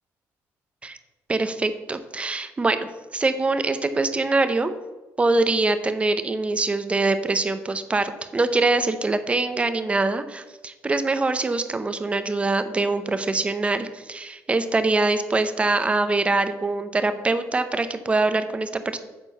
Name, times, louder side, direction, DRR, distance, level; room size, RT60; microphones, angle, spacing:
voice 1, 1.3-4.8 5.2-19.0, right 3 dB, 20° right, 10 dB, 0.7 m, -24 dB
8.5 x 4.5 x 6.6 m, 1.1 s
cardioid pair, 110°, 6 cm